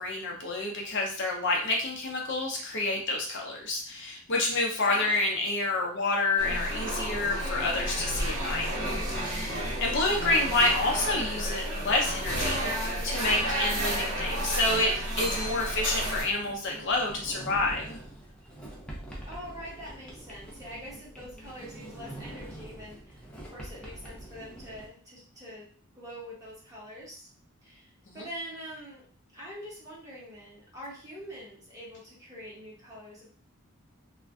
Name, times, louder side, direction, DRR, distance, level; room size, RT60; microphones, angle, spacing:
voice 1, 0.0-8.7 9.1-12.7 13.0-18.0 28.1-28.2, left 2 dB, 55° left, 0 dB, 0.6 m, -28 dB
voice 2, 4.8-5.2 19.3-27.3 27.6-29.0 29.3-33.4, equal, 15° right, -6 dB, 1.1 m, -44 dB
sound 1, 6.4-16.2, right 1 dB, 85° right, 1.3 m, -31 dB
Sliding door, 15.2-24.9, right 1 dB, 5° left, 0.5 m, -44 dB
2.4 x 2.2 x 3.5 m, 0.44 s
head